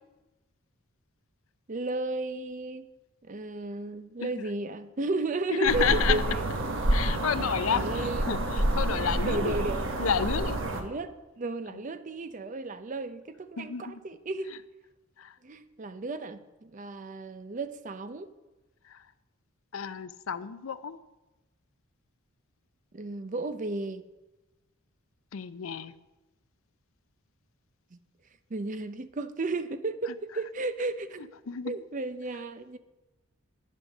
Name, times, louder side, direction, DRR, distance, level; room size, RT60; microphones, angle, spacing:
voice 1, 1.7-2.9 3.2-6.4 7.4-8.4 9.2-9.9 10.7-14.5 15.4-18.3 22.9-24.0 27.9-28.0 28.5-31.3 31.6-32.8, right 2 dB, 35° right, 0.5 m, -34 dB
voice 2, 5.5-6.2 6.9-9.6 10.0-10.6 13.6-14.0 15.2-15.3 18.9-19.0 19.7-21.0 25.3-26.0 31.5-31.7, left 7 dB, 75° left, 0.5 m, -30 dB
sound 1, 5.7-10.8, right 1 dB, 60° right, 1.3 m, -28 dB
9.8 x 7.6 x 6.4 m
head